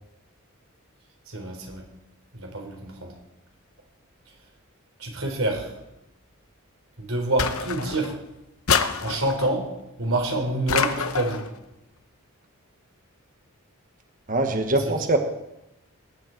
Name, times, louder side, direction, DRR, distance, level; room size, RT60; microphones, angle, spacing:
voice 1, 1.3-1.8 2.3-3.1 5.0-5.7 7.0-8.2 9.0-9.7 10.0-11.5 14.9-15.0, right 2 dB, 65° right, 2 dB, 3.8 m, -27 dB
sound 1, 7.4-8.2 8.7-9.5 10.7-11.5, left 6 dB, 75° left, 0.9 m, -26 dB
voice 2, 14.3-15.2, right 2 dB, 40° right, 6 dB, 1.3 m, -22 dB
20.0 x 11.0 x 4.6 m, 0.91 s
head